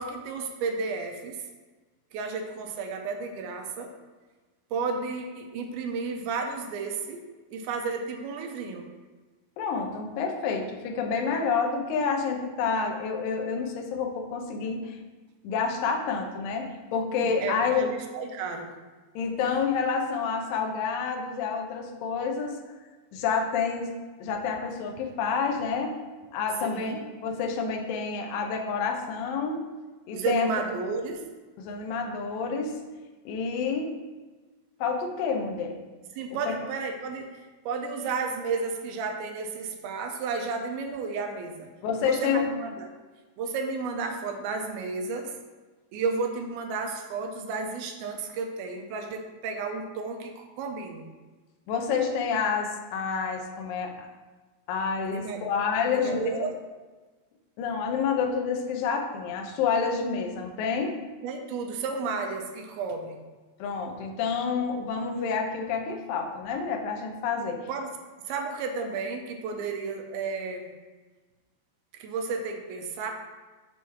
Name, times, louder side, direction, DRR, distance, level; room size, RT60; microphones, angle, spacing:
voice 1, 0.0-1.5 2.1-3.9 4.7-7.3 7.5-8.9 17.2-18.7 26.6-27.0 30.1-31.3 36.1-37.3 37.7-41.7 42.0-42.9 43.4-45.4 45.9-51.1 55.1-55.5 55.8-56.5 61.2-63.2 67.7-67.9 68.3-70.7 72.0-73.1, right 4 dB, 80° right, 3 dB, 2.5 m, -32 dB
voice 2, 9.6-15.0 15.4-17.9 19.2-22.6 23.1-23.9 24.2-26.0 26.3-29.6 30.1-30.5 31.6-32.8 33.3-33.9 34.8-35.8 36.5-36.6 41.8-42.5 51.7-54.1 54.7-56.5 57.6-61.0 63.6-67.6, left 5 dB, 75° left, 2 dB, 2.2 m, -28 dB
7.0 x 3.1 x 5.7 m, 1.3 s
omnidirectional pair, 4.4 m